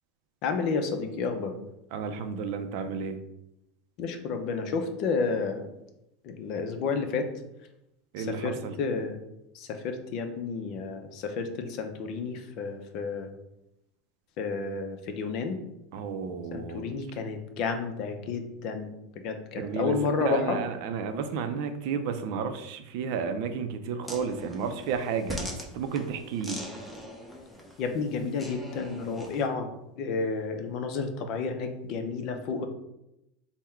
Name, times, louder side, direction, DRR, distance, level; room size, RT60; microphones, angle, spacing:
voice 1, 0.4-1.5 4.0-5.6 6.2-7.3 8.2-9.2 9.5-13.3 14.4-15.6 16.5-18.9 19.2-20.6 27.8-29.7 30.0-32.7, left 4 dB, 50° left, 6 dB, 0.5 m, -31 dB
voice 2, 1.9-3.2 8.1-8.7 15.9-16.8 19.6-26.6, right 6 dB, 65° right, 8 dB, 0.4 m, -32 dB
sound 1, 24.0-29.5, left 1 dB, 5° left, 0.7 m, -42 dB
3.6 x 2.1 x 4.3 m, 0.87 s
supercardioid pair, 130°, 0 cm